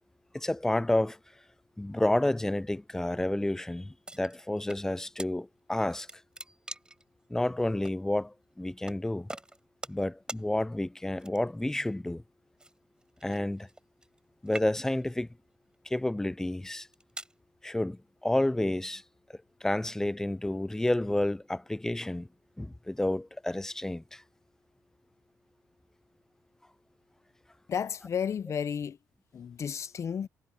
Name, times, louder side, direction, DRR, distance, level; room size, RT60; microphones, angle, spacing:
voice 1, 0.3-1.2 1.8-6.1 7.3-9.3 9.9-12.2 13.2-13.7 14.4-15.3 15.9-16.9 17.6-19.0 19.6-22.3 22.6-24.2, left 1 dB, 10° left, 0.3 m, -30 dB
sound 1, 4.0-4.8 5.2-5.3 5.7-7.0 7.8-8.0 8.9-9.0 9.3-10.0 10.3-10.4 11.2-11.6 12.6-14.2 14.4-15.0 15.7-16.0 16.7-17.4, right 2 dB, 15° right, 5.7 m, -43 dB
voice 2, 27.7-29.0 29.3-30.3, left 7 dB, 50° left, 0.7 m, -32 dB
cardioid pair, 75°, 6 cm